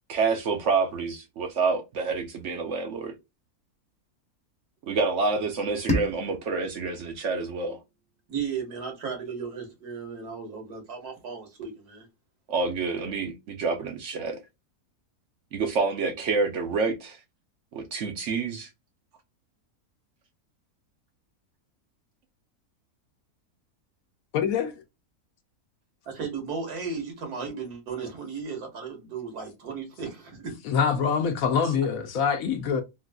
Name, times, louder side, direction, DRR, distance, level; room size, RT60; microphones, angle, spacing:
voice 1, 0.1-3.2 4.9-7.8 12.5-14.4 15.5-17.2 17.7-18.7 31.6-31.8, right 4 dB, 60° right, 0.8 m, -28 dB
sound 1, 5.9-8.8, left 1 dB, 5° left, 0.6 m, -34 dB
voice 2, 8.3-12.1 26.1-30.5, right 5 dB, 80° right, 1.8 m, -35 dB
voice 3, 24.3-24.7 30.6-32.8, left 6 dB, 70° left, 1.0 m, -25 dB
3.8 x 2.5 x 2.3 m
omnidirectional pair, 1.6 m